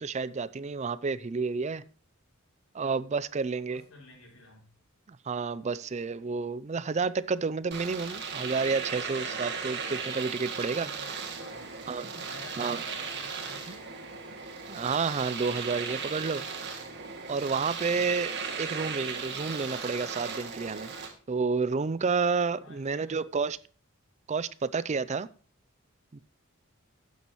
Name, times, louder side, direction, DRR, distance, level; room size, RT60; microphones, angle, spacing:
voice 1, 0.0-1.8 2.7-3.8 5.1-10.9 11.9-12.1 12.6-12.8 14.7-16.4 17.3-18.3 18.6-20.9 21.3-23.6 24.3-25.3 26.1-26.2, right 4 dB, 35° right, 0.4 m, -30 dB
voice 2, 3.5-4.6 10.5-11.7 12.0-14.1 22.6-23.2, left 2 dB, 90° left, 5.8 m, -51 dB
Domestic sounds home sounds, 7.7-21.1, right 5 dB, 55° right, 2.3 m, -37 dB
12.5 x 9.3 x 3.0 m
head